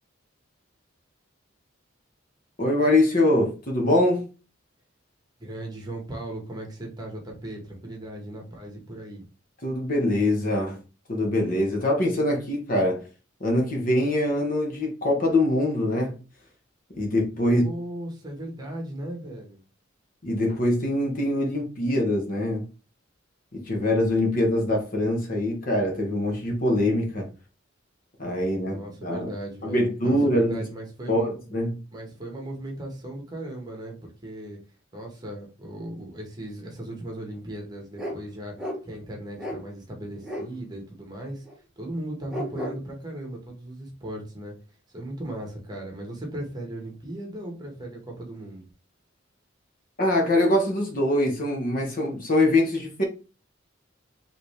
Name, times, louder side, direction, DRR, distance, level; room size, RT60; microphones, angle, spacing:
voice 1, 2.6-4.3 9.6-10.8 11.1-13.0 13.4-16.2 17.0-17.6 20.2-22.6 23.5-27.3 28.2-29.3 29.6-30.6 31.1-31.8 50.0-53.0, left 1 dB, 45° left, 1.3 m, -23 dB
voice 2, 5.4-9.2 17.4-19.6 28.6-31.3 31.9-34.6 34.9-38.6 38.8-41.4 41.8-44.5 44.9-48.7, right 1 dB, 20° right, 1.4 m, -37 dB
sound 1, 38.0-38.2 38.6-38.8 39.4-39.6 40.2-40.5 41.4-41.5 42.3-42.8, equal, 5° right, 1.2 m, -32 dB
4.9 x 3.3 x 3.3 m
head